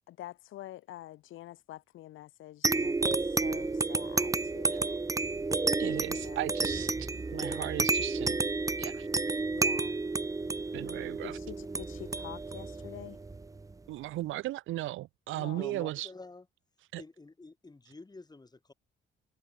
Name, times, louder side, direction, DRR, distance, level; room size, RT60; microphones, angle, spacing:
voice 1, 0.1-5.0 6.1-6.4 9.5-10.0 11.2-13.2 15.3-15.6, left 14 dB, 80° left, 1.1 m, -47 dB
sound 1, 2.6-13.7, right 3 dB, 15° right, 0.7 m, -31 dB
voice 2, 5.8-8.4 8.8-9.1 10.7-11.4 13.9-16.1 16.9-17.0, right 16 dB, 80° right, 0.7 m, -36 dB
voice 3, 15.5-16.5 17.0-18.7, left 3 dB, 20° left, 4.0 m, -48 dB
cardioid pair, 90°, 20 cm